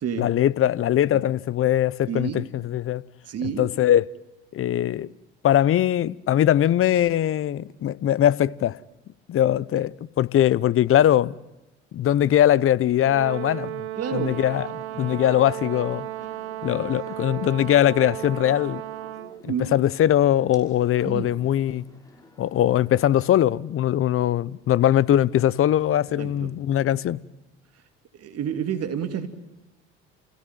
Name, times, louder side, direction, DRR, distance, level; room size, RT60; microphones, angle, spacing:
voice 1, 0.2-3.0 3.4-4.0 4.5-5.1 5.4-8.8 9.3-11.3 11.9-13.8 14.1-14.7 15.0-16.1 16.6-18.8 19.4-21.8 22.4-27.2, left 11 dB, 40° left, 0.8 m, -21 dB
voice 2, 2.1-2.4 3.3-3.7 14.0-14.3 19.4-19.8 21.0-21.3 26.2-26.5 28.1-29.3, right 8 dB, 50° right, 2.8 m, -29 dB
Brass instrument, 13.1-19.4, right 14 dB, 90° right, 1.1 m, -34 dB
sound 1, 14.1-23.4, left 1 dB, 10° left, 5.4 m, -52 dB
29.0 x 17.0 x 9.2 m
hypercardioid pair, 65°, 33 cm